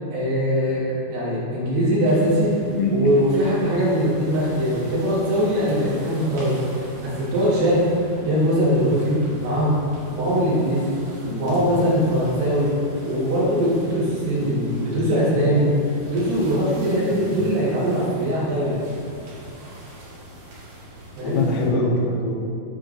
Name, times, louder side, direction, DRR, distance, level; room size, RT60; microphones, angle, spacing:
voice 1, 0.1-2.6 2.9-7.8 8.3-9.8 10.1-11.0 11.4-12.7 13.0-15.7 16.0-18.8 21.2-21.5, equal, 85° right, -8 dB, 3.4 m, -21 dB
sound 1, 2.0-21.7, right 1 dB, 65° right, 2.9 m, -41 dB
voice 2, 2.7-3.2 11.2-11.5 14.4-14.8 16.9-17.2 21.2-22.4, left 2 dB, 80° left, -1 dB, 2.4 m, -24 dB
7.5 x 6.5 x 2.5 m, 2.3 s
omnidirectional pair, 4.6 m